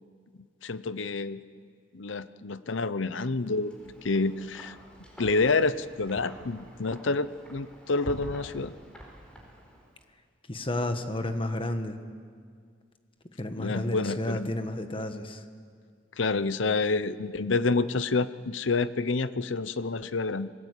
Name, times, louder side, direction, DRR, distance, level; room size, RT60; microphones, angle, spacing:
voice 1, 0.6-1.4 1.9-4.8 5.2-8.7 13.6-14.5 16.2-20.5, left 3 dB, 80° left, 15 dB, 0.8 m, -28 dB
Wind, 3.5-10.0, equal, 5° left, 4.6 m, -46 dB
voice 2, 10.5-12.0 13.4-15.4, left 1 dB, 30° left, 7 dB, 1.5 m, -31 dB
27.0 x 20.0 x 8.3 m, 2.1 s
head